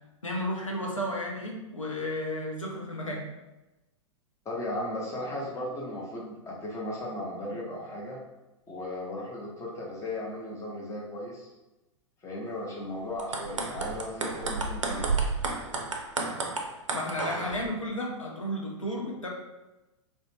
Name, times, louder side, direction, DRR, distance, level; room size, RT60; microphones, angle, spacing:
voice 1, 0.2-3.2 16.9-19.3, left 1 dB, 90° left, -1 dB, 0.6 m, -33 dB
voice 2, 4.4-8.2 8.7-11.5 12.2-15.1, left 1 dB, 20° left, -3 dB, 0.7 m, -36 dB
sound 1, 13.1-17.6, right 4 dB, 75° right, 0.4 m, -31 dB
2.5 x 2.1 x 3.1 m, 1.0 s
figure-of-eight pair, 100°, 16 cm